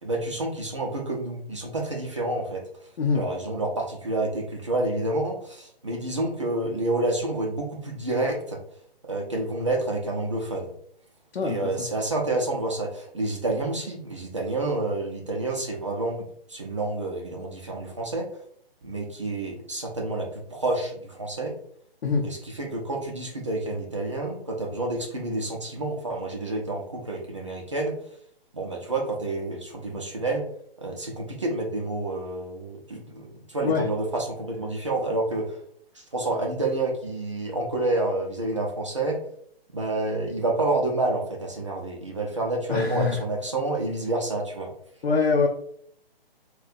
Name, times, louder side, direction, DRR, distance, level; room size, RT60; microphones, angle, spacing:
voice 1, 0.0-2.6 3.1-8.6 9.0-10.7 11.4-16.2 16.5-18.3 18.8-21.5 22.2-27.9 28.5-30.4 30.8-35.6 35.9-39.2 39.7-44.7, right 2 dB, 30° right, 0 dB, 0.4 m, -29 dB
voice 2, 11.3-11.9 22.0-22.2 33.6-33.8 42.7-43.2 45.0-45.5, left 5 dB, 85° left, 1 dB, 0.6 m, -24 dB
4.0 x 2.1 x 2.5 m, 0.64 s
hypercardioid pair, 165°, 30 cm